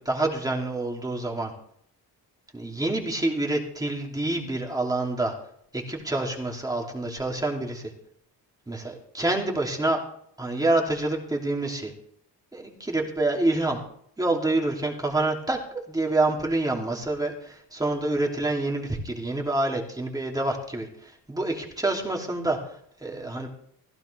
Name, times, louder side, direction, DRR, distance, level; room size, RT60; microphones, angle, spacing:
voice 1, 0.0-1.5 2.5-5.3 5.7-7.9 8.7-10.0 10.4-11.9 12.5-13.8 14.2-23.5, right 2 dB, 10° right, 0 dB, 2.9 m, -27 dB
16.0 x 15.5 x 3.4 m, 0.67 s
cardioid pair, 140°, 39 cm